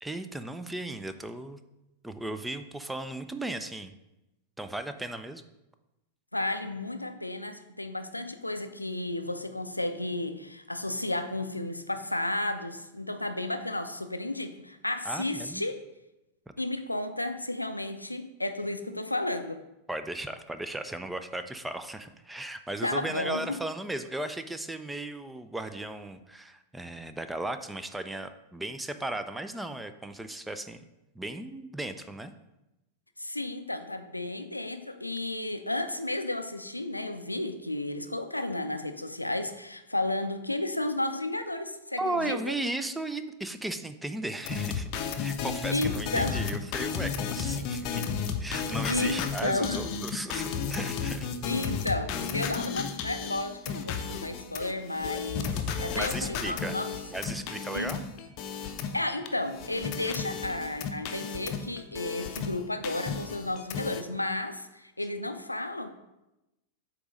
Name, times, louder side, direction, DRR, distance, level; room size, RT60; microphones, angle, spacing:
voice 1, 0.0-1.6 2.0-3.9 4.6-5.4 15.1-15.7 19.9-30.8 31.2-32.3 42.0-44.9 45.2-48.0 48.4-51.3 55.9-56.8 57.1-58.0, right 2 dB, 5° right, 10 dB, 0.4 m, -36 dB
voice 2, 6.3-15.8 16.6-19.6 22.8-23.6 33.2-42.5 45.7-46.5 48.9-49.8 51.4-55.5 55.8-57.0 57.7-57.9 58.9-65.9, left 2 dB, 85° left, 8 dB, 0.4 m, -33 dB
sound 1, 44.4-59.3 59.5-62.6 62.8-64.0, left 6 dB, 40° left, 0.6 m, -33 dB
8.0 x 3.0 x 5.1 m, 0.94 s
figure-of-eight pair, 90°, 0 cm